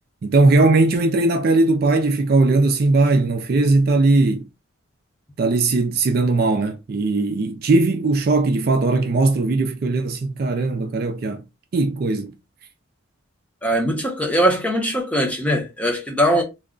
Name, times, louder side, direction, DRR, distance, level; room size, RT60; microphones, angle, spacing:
voice 1, 0.2-4.5 5.4-11.4 11.7-12.3, right 3 dB, 45° right, 0.4 m, -19 dB
voice 2, 13.6-16.4, equal, 5° left, 0.6 m, -21 dB
2.3 x 2.1 x 3.6 m
head